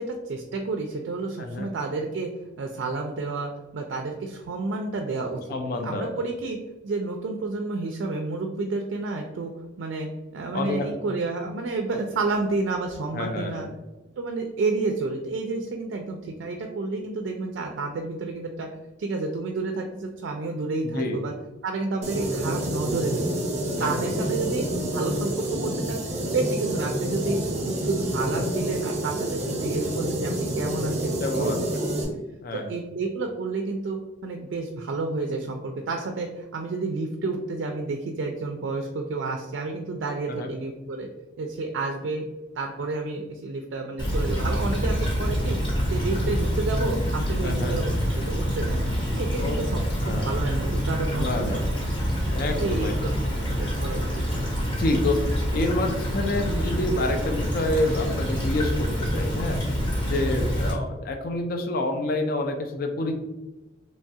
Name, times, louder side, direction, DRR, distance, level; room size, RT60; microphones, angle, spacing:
voice 1, 0.0-2.3 2.6-5.4 5.8-6.6 6.8-9.5 9.8-10.1 10.3-13.7 14.2-18.7 19.0-21.3 21.6-23.2 23.8-24.6 24.9-27.4 27.7-31.5 32.5-41.1 41.4-42.2 42.6-45.6 45.9-48.9 49.1-51.6 52.6-53.1 53.6-54.0, right 3 dB, 70° right, 3 dB, 0.3 m, -30 dB
voice 2, 1.4-1.7 5.5-6.2 10.5-10.9 13.1-13.7 20.8-21.2 23.8-24.3 31.2-31.6 32.4-32.7 40.3-40.5 47.4-47.8 49.4-49.6 50.0-50.3 51.2-51.6 52.3-53.3 54.8-55.2 55.5-59.6 60.1-63.1, left 2 dB, 50° left, 4 dB, 0.3 m, -28 dB
sound 1, 22.0-32.0, right 1 dB, 35° right, 0.7 m, -28 dB
Stream / Trickle dribble, 44.0-60.7, equal, 25° left, 0.7 m, -26 dB
3.1 x 2.3 x 2.6 m, 1.1 s
head